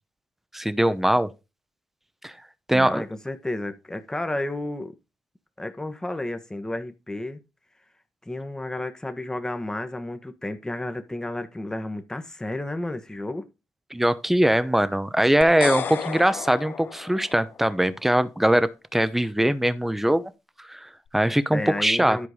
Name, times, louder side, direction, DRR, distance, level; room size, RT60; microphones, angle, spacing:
voice 1, 0.5-1.3 2.2-2.3 2.7-3.0 13.9-20.3 20.6-22.3, right 1 dB, 5° right, 0.9 m, -22 dB
voice 2, 2.7-4.9 5.6-7.4 8.3-13.5 21.5-22.3, left 1 dB, 15° left, 1.6 m, -32 dB
sound 1, 15.4-17.7, left 7 dB, 60° left, 1.0 m, -33 dB
11.0 x 4.7 x 5.2 m
hypercardioid pair, 45°, 4 cm